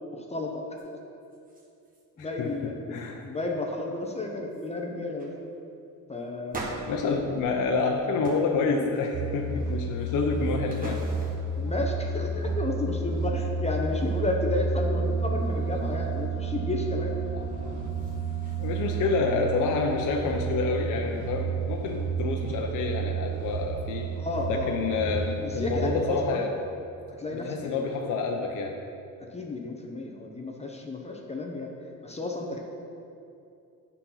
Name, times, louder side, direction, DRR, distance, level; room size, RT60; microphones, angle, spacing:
voice 1, 0.1-1.0 2.2-5.3 6.1-7.4 11.5-17.1 24.2-25.1 25.4-26.4 27.2-27.8 29.3-31.7 32.0-32.6, left 2 dB, 20° left, 1 dB, 0.8 m, -32 dB
sound 1, 0.8-0.9 1.2-2.0 2.3-2.6 3.0-3.5 4.1-4.2 4.5-4.7 5.2-5.4 6.5-7.9 8.2-8.5 8.9-9.4 10.0-11.6 17.6-19.0, right 3 dB, 25° right, 1.3 m, -42 dB
voice 2, 2.2-3.2 6.9-11.0 17.3-17.8 18.6-24.1 24.5-26.5 27.3-28.8, left 4 dB, 60° left, 2 dB, 0.8 m, -28 dB
sound 2, 9.1-26.1, right 4 dB, 60° right, 0.7 m, -31 dB
sound 3, 14.9-19.3, left 13 dB, 85° left, 1.0 m, -44 dB
9.3 x 4.2 x 5.7 m, 2.6 s
cardioid pair, 130°, 34 cm